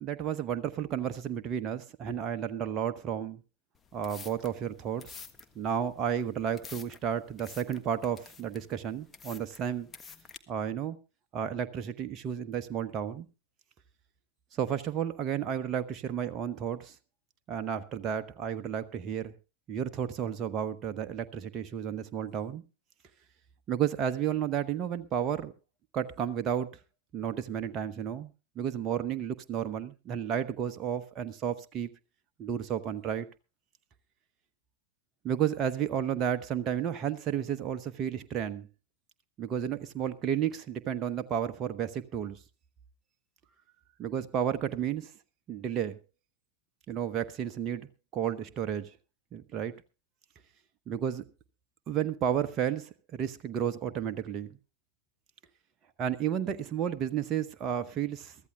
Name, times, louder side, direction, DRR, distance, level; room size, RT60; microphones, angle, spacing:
voice 1, 0.0-3.4 3.9-5.2 5.5-9.9 10.5-11.0 11.3-13.3 14.5-17.0 17.5-19.3 19.7-22.6 23.7-25.5 25.9-26.7 27.1-28.3 28.6-31.9 32.4-33.3 35.2-38.7 39.4-42.4 44.0-45.1 45.5-46.0 46.9-47.9 48.1-48.9 49.3-49.7 50.9-51.2 51.9-54.5 56.0-58.4, right 9 dB, 30° right, 8 dB, 1.0 m, -32 dB
sound 1, 3.7-10.4, left 5 dB, 20° left, 1.5 m, -50 dB
23.5 x 14.5 x 2.3 m, 0.30 s
figure-of-eight pair, 90°, 0 cm